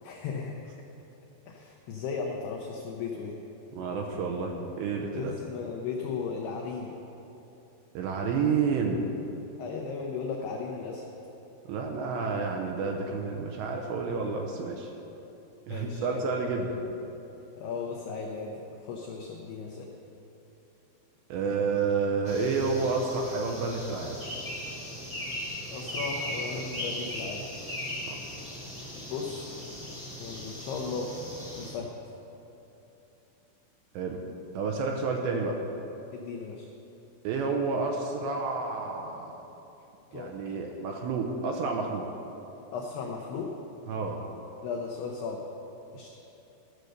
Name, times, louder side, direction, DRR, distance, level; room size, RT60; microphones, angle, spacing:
voice 1, 0.0-0.7 1.5-3.4 5.1-7.0 9.6-11.1 15.7-16.5 17.6-18.5 18.8-19.9 25.7-27.5 29.1-29.5 30.2-31.2 31.6-32.0 36.1-36.7 40.1-40.6 42.7-43.5 44.6-45.5 45.9-46.1, left 5 dB, 85° left, 0 dB, 2.3 m, -36 dB
voice 2, 3.8-5.3 8.0-9.1 11.7-14.9 15.7-16.7 21.3-24.2 28.1-28.2 33.9-34.2 34.5-35.6 37.2-39.4 40.1-42.1 43.9-44.2, right 4 dB, 85° right, 2 dB, 2.5 m, -30 dB
sound 1, 22.2-31.7, left 1 dB, 5° right, 1.0 m, -38 dB
13.5 x 6.4 x 6.6 m, 3.0 s
omnidirectional pair, 5.8 m